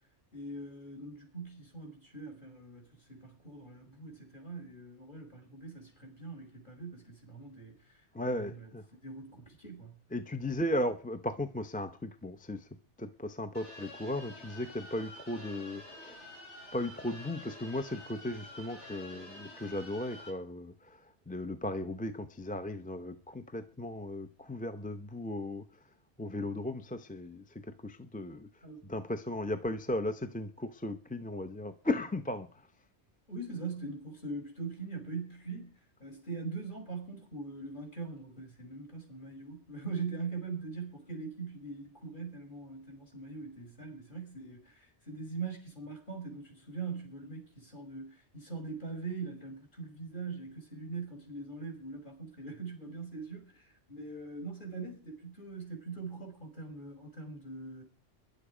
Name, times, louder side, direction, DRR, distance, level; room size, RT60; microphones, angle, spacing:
voice 1, 0.3-10.0 28.6-28.8 33.3-57.8, right 4 dB, 45° left, 4 dB, 5.7 m, -42 dB
voice 2, 8.1-8.8 10.1-12.7 13.0-16.2 16.7-25.6 26.2-28.5 28.9-32.6, left 1 dB, 10° left, 7 dB, 0.7 m, -36 dB
sound 1, 13.5-20.3, left 1 dB, 85° left, 7.8 m, -49 dB
22.0 x 11.5 x 5.0 m, 0.41 s
omnidirectional pair, 1.1 m